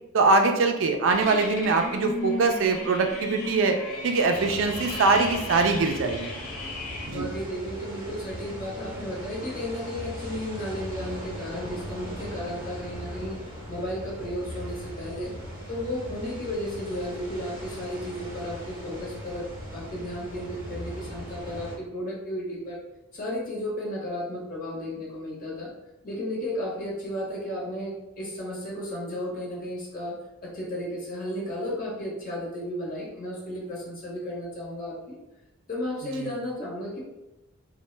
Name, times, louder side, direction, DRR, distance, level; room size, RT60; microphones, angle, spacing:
voice 1, 0.1-3.8 4.0-6.3 7.1-7.3 36.2-36.3, right 3 dB, 60° right, 5 dB, 0.3 m, -23 dB
sound 1, 1.1-7.1, left 3 dB, 85° left, 0.6 m, -35 dB
sound 2, 4.3-21.8, equal, 20° right, 0.7 m, -39 dB
voice 2, 7.1-13.4 13.7-15.3 15.7-22.8 23.1-25.7 26.0-35.2 35.7-37.0, left 1 dB, 40° left, -4 dB, 0.9 m, -34 dB
3.0 x 2.1 x 3.2 m, 0.95 s
head